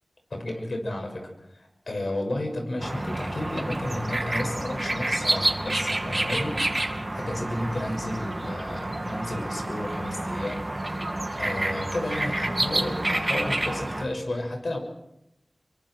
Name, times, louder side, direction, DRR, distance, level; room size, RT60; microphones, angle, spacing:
voice 1, 0.3-1.2 1.5-6.6 7.1-10.7 11.4-14.8, left 1 dB, 70° left, 3 dB, 6.3 m, -32 dB
sound 1, 2.8-14.0, right 1 dB, 35° right, 2.7 m, -29 dB
27.5 x 23.5 x 4.7 m, 0.86 s
wide cardioid pair, 45°, 0 cm